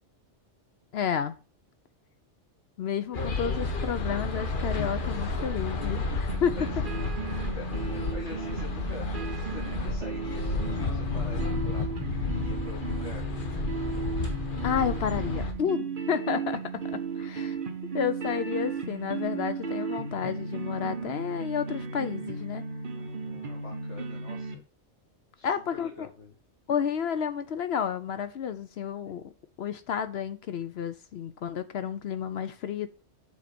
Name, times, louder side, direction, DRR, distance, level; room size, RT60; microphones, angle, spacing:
voice 1, 0.9-1.3 2.8-6.6 14.6-17.6 17.9-22.6 25.4-26.1 26.7-29.3 29.6-32.9, left 8 dB, 65° left, 0.9 m, -31 dB
sound 1, 3.1-15.5, left 3 dB, 50° left, 1.2 m, -31 dB
sound 2, 6.3-24.5, right 4 dB, 50° right, 1.1 m, -35 dB
voice 2, 7.5-13.2 23.0-24.6 25.3-26.3, left 3 dB, 85° left, 2.2 m, -45 dB
7.4 x 4.0 x 5.9 m
omnidirectional pair, 1.2 m